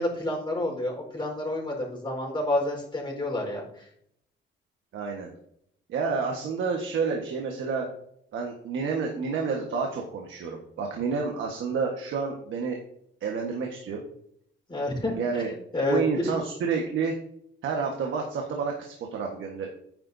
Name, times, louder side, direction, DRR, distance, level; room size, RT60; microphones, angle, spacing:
voice 1, 0.0-3.8 14.7-16.3, left 1 dB, 25° left, -1 dB, 4.4 m, -29 dB
voice 2, 4.9-5.3 5.9-7.9 8.3-12.8 13.2-14.0 15.1-15.5 15.9-17.1 17.6-19.7, right 5 dB, 75° right, 1 dB, 1.5 m, -29 dB
12.0 x 9.6 x 2.7 m, 0.73 s
cardioid pair, 90°, 20 cm